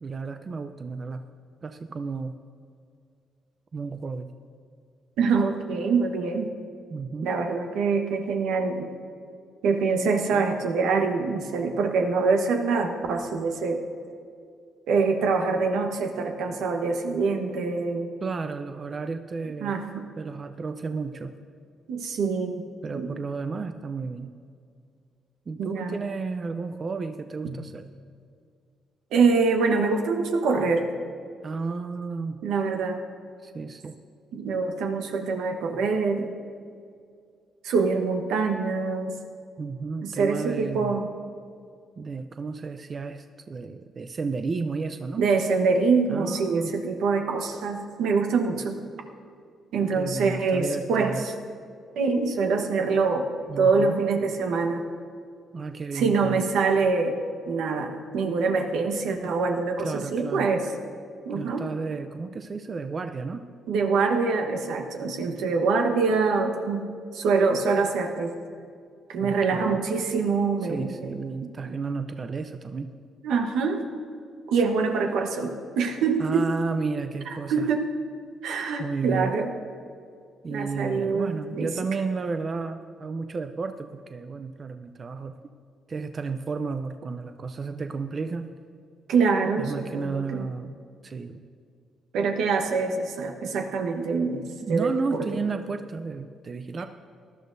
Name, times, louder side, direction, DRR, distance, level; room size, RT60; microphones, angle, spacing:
voice 1, 0.0-1.2 1.6-2.3 3.7-4.3 6.9-7.4 10.0-10.5 18.2-19.8 20.2-21.3 22.8-24.3 25.5-27.8 31.4-32.4 33.4-34.0 39.6-41.0 42.0-45.2 46.1-46.8 50.0-51.3 53.5-54.1 55.5-56.5 59.8-60.5 61.3-63.4 69.2-69.8 70.6-72.9 76.2-77.7 78.8-79.4 80.4-85.4 85.9-88.5 89.6-90.8 91.0-91.5 94.7-96.9, right 4 dB, 40° right, 8 dB, 0.5 m, -32 dB
voice 2, 5.2-6.5 7.2-8.9 9.6-13.9 14.9-18.1 19.6-20.1 21.9-22.6 22.9-23.1 25.6-26.0 27.4-27.6 29.1-30.9 32.4-33.0 34.3-36.3 37.6-39.2 40.0-41.1 45.2-48.8 49.7-51.2 52.0-53.3 53.6-54.8 55.9-57.2 57.5-60.7 61.3-61.7 63.7-68.3 69.1-71.2 71.4-71.7 73.2-73.8 74.5-76.5 77.5-78.0 78.4-79.5 80.5-81.7 89.1-90.5 92.1-94.4 94.7-95.3, right 4 dB, 85° right, 4 dB, 1.1 m, -25 dB
18.5 x 12.0 x 2.6 m, 2.3 s
cardioid pair, 90°, 0 cm